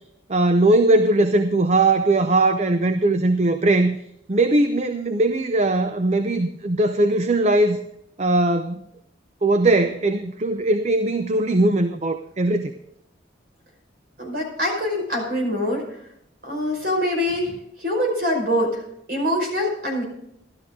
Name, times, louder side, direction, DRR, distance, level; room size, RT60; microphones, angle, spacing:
voice 1, 0.3-4.0 4.3-7.8 8.2-8.8 9.4-12.7, right 2 dB, 35° right, 8 dB, 0.6 m, -19 dB
voice 2, 14.2-15.8 16.4-18.8 19.1-20.0, left 1 dB, 55° right, 1 dB, 5.3 m, -24 dB
13.0 x 12.5 x 3.8 m, 0.76 s
head